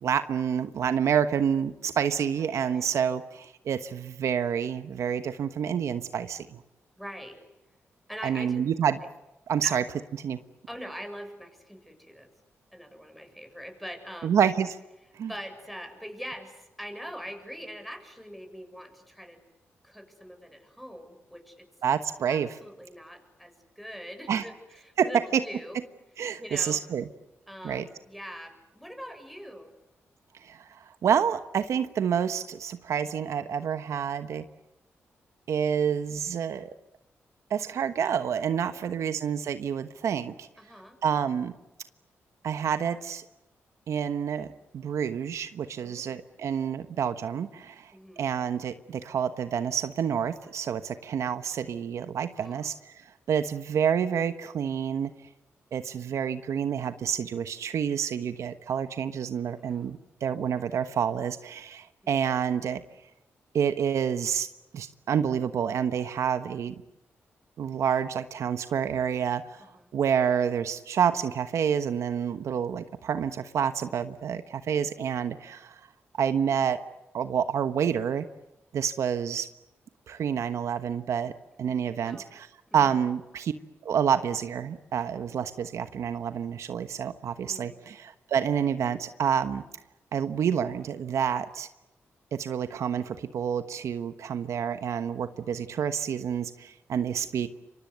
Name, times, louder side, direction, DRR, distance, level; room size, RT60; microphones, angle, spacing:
voice 1, 0.0-6.6 8.2-9.0 9.5-9.8 10.2-10.4 14.2-14.8 15.2-15.3 21.8-22.5 24.3-24.4 25.0-25.4 26.2-27.0 27.6-27.9 30.4-34.4 35.5-36.7 37.5-40.5 41.0-41.5 42.4-43.2 43.9-44.5 44.7-53.0 53.3-55.1 55.7-62.8 63.5-64.5 64.7-66.7 67.6-69.6 69.9-75.8 76.2-76.8 77.1-78.3 78.7-79.5 80.1-81.3 81.6-82.5 82.7-83.5 83.8-89.6 90.1-91.7 92.3-97.5, right 8 dB, 75° right, 10 dB, 1.2 m, -28 dB
voice 2, 2.4-2.9 7.0-7.4 8.1-8.6 9.6-9.8 10.7-12.3 12.7-14.3 15.3-19.4 19.8-21.7 22.3-25.8 26.4-26.8 27.5-29.7 38.7-39.1 40.6-41.0 45.8-46.2 47.9-48.3 52.3-52.7 59.6-59.9 69.6-69.9 81.6-81.8 82.1-82.2 82.7-83.0 87.4-87.8, equal, ahead, 6 dB, 7.3 m, -43 dB
28.0 x 24.0 x 8.1 m, 0.95 s
cardioid pair, 65°, 5 cm